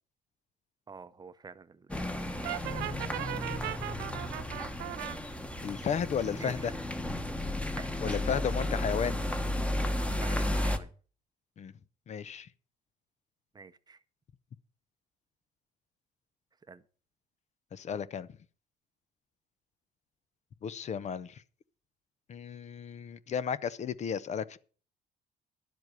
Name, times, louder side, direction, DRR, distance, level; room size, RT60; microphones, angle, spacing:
voice 1, 0.9-2.6 2.9-4.0 6.4-6.5 7.7-8.3 10.0-10.9 13.5-14.0 16.7-16.8, right 4 dB, 25° right, 0.7 m, -48 dB
sound 1, 1.9-10.8, left 1 dB, 5° left, 1.2 m, -33 dB
Brass instrument, 2.4-5.2, right 18 dB, 85° right, 0.4 m, -38 dB
voice 2, 5.6-6.7 8.0-9.2 11.6-11.7 12.1-12.5 17.7-18.3 20.6-21.4 22.3-24.6, left 7 dB, 45° left, 0.7 m, -33 dB
11.0 x 7.8 x 6.6 m
cardioid pair, 110°, 17 cm